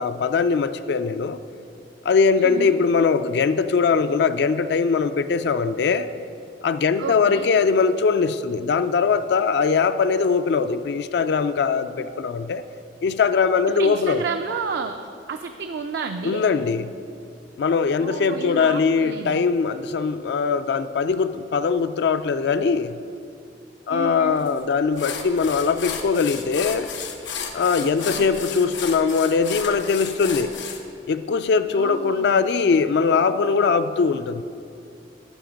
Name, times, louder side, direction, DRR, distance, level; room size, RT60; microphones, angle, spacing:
voice 1, 0.0-1.4 2.0-6.1 6.6-12.6 13.0-14.2 16.2-16.9 17.6-23.0 23.9-26.9 27.5-30.5 31.1-34.4, left 5 dB, 65° left, 11 dB, 0.4 m, -21 dB
voice 2, 2.4-2.8 7.0-7.5 13.7-15.0 15.3-16.4 18.0-19.5 23.9-24.4 27.8-28.3 31.7-32.4, right 5 dB, 65° right, 6 dB, 0.4 m, -31 dB
sound 1, 24.5-24.6 25.0-30.8, left 6 dB, 85° left, 0.8 m, -33 dB
11.5 x 5.1 x 5.0 m, 2.5 s
head